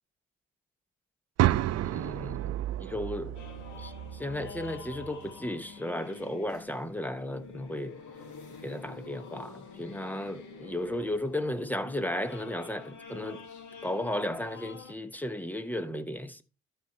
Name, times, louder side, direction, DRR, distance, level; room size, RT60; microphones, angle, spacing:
sound 1, 1.4-5.4, right 14 dB, 55° right, 0.4 m, -31 dB
voice 1, 1.8-3.4 3.7-8.0 8.6-13.5 13.8-16.4, left 1 dB, 5° left, 0.9 m, -35 dB
sound 2, 3.3-14.9, left 5 dB, 75° left, 2.0 m, -47 dB
12.0 x 4.4 x 4.4 m
cardioid pair, 90°, 30 cm